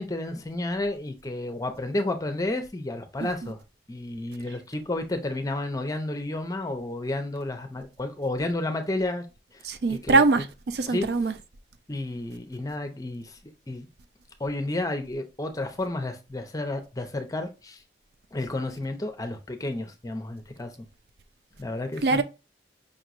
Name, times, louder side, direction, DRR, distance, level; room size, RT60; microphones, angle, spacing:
voice 1, 0.0-3.6 3.9-9.3 9.5-10.2 10.9-11.1 11.9-13.4 13.7-13.9 14.4-17.8 18.3-20.9 21.6-22.2, left 2 dB, 20° left, 0.6 m, -31 dB
voice 2, 9.6-11.3 22.0-22.2, right 3 dB, 65° right, 0.4 m, -22 dB
5.2 x 3.0 x 2.5 m
head